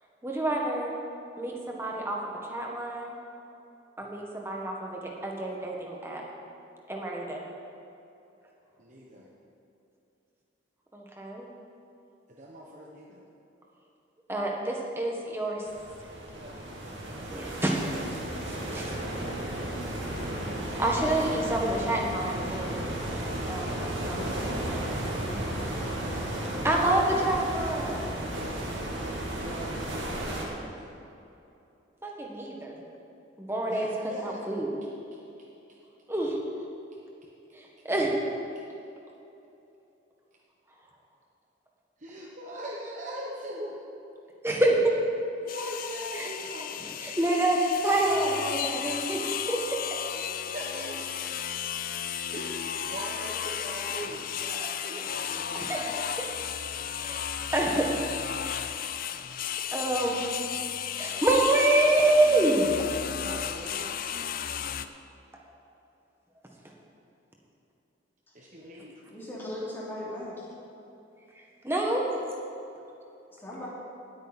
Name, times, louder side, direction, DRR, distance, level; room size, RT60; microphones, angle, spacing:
voice 1, 0.2-0.9 1.4-2.2 2.5-3.1 4.0-6.2 6.9-7.5 10.9-11.4 14.3-15.6 17.3-17.8 18.1-18.2 18.5-19.0 20.8-22.8 23.5-24.2 24.5-24.6 26.6-28.1 32.0-32.7 33.4-34.7 36.1-36.4 37.5-38.2 44.4-44.9 46.1-46.3 47.0-49.2 49.5-49.8 55.5-55.8 56.2-56.3 57.0-57.2 57.5-57.9 59.7-60.2 61.0-62.7 71.6-72.1, right 1 dB, 15° right, -1 dB, 1.5 m, -27 dB
voice 2, 8.8-9.3 12.3-13.2 16.4-16.7 17.1-17.2 28.2-28.5 29.2-30.7 33.7-34.4 42.0-43.8 45.4-47.1 50.1-51.0 52.3-56.1 63.0-63.9 68.3-68.9, equal, 40° right, -3 dB, 1.2 m, -42 dB
sound 1, 15.7-30.4, right 1 dB, 75° right, 2.5 m, -34 dB
sound 2, 45.5-64.9, left 9 dB, 45° left, 0.4 m, -34 dB
voice 3, 69.1-70.4 73.3-73.7, left 1 dB, 10° left, -7 dB, 3.0 m, -37 dB
18.5 x 8.9 x 4.2 m, 2.8 s
head